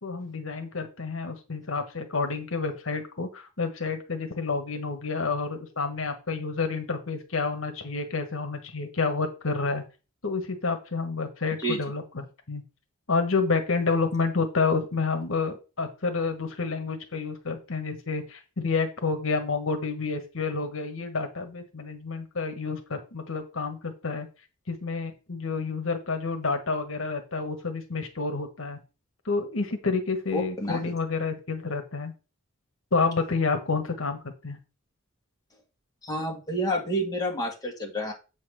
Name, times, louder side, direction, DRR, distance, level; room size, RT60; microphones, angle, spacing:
voice 1, 0.0-9.8 10.2-12.6 13.1-24.3 24.7-28.8 29.2-32.1 32.9-34.6, left 4 dB, 75° left, 6 dB, 1.3 m, -29 dB
voice 2, 30.3-30.9 36.0-38.1, equal, 20° left, 0 dB, 2.1 m, -29 dB
8.1 x 4.1 x 6.6 m, 0.32 s
head